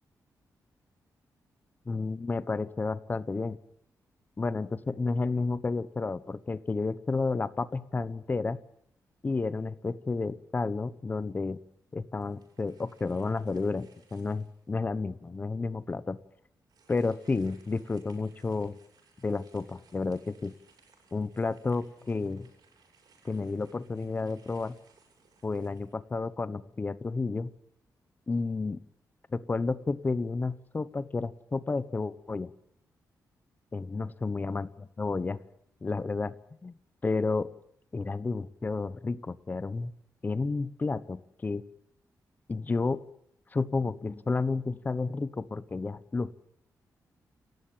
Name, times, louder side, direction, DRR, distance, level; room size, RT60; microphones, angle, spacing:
voice 1, 1.9-3.6 4.4-8.6 9.2-11.6 11.9-16.2 16.9-18.8 19.2-20.5 21.1-22.5 23.2-24.8 25.4-27.5 28.3-28.8 29.3-32.5 33.7-35.4 35.8-36.3 36.6-36.8 37.0-37.5 37.9-39.9 40.2-41.6 42.5-43.0 43.5-46.3, left 3 dB, 25° left, 16 dB, 1.0 m, -31 dB
sound 1, 12.2-14.7 15.3-15.4 16.6-26.4, right 5 dB, 80° right, 7.3 m, -64 dB
28.5 x 14.5 x 8.7 m, 0.73 s
wide cardioid pair, 130°, 7 cm